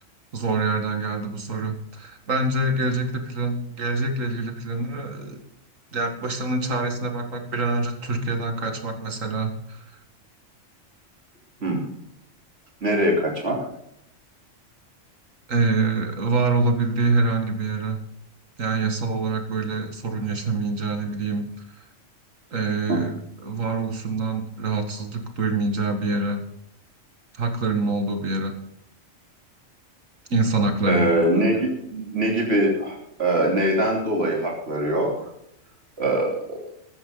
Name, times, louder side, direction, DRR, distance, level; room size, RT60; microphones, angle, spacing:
voice 1, 0.3-5.4 5.9-9.8 15.5-18.0 18.6-21.5 21.7-21.8 22.5-26.4 27.3-28.6 30.3-31.1 31.3-31.4, right 3 dB, 80° right, 6 dB, 2.3 m, -25 dB
voice 2, 12.8-13.6 22.9-23.0 30.9-35.1 36.0-36.6, right 1 dB, 50° right, -1 dB, 3.6 m, -22 dB
14.5 x 14.0 x 3.9 m, 0.75 s
omnidirectional pair, 1.3 m